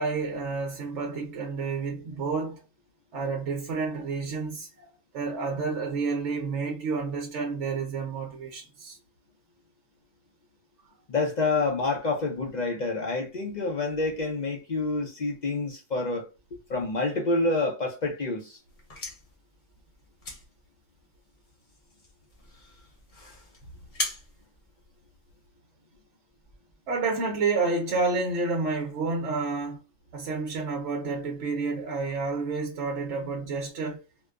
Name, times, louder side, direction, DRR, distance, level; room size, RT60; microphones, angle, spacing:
voice 1, 0.0-2.6 3.1-4.9 5.1-9.0 26.9-29.8 30.1-34.0, right 4 dB, 60° right, 0.9 m, -30 dB
voice 2, 11.1-18.6, left 3 dB, 60° left, 0.4 m, -28 dB
sound 1, 18.6-25.5, left 2 dB, 40° left, 0.9 m, -41 dB
2.7 x 2.2 x 2.3 m
omnidirectional pair, 1.5 m